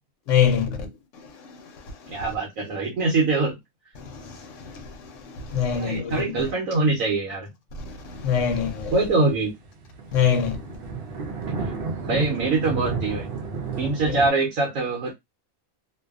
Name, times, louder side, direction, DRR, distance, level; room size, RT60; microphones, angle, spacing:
voice 1, 0.3-0.9 4.2-4.4 4.7-4.9 5.5-6.3 7.9-8.9 10.1-10.6, left 8 dB, 70° left, 0.9 m, -23 dB
voice 2, 2.1-3.6 5.5-7.5 8.9-9.6 12.0-13.3 13.8-15.1, right 3 dB, 80° right, 1.1 m, -24 dB
sound 1, 8.1-14.3, right 4 dB, 60° right, 0.7 m, -32 dB
2.5 x 2.3 x 2.3 m
omnidirectional pair, 1.4 m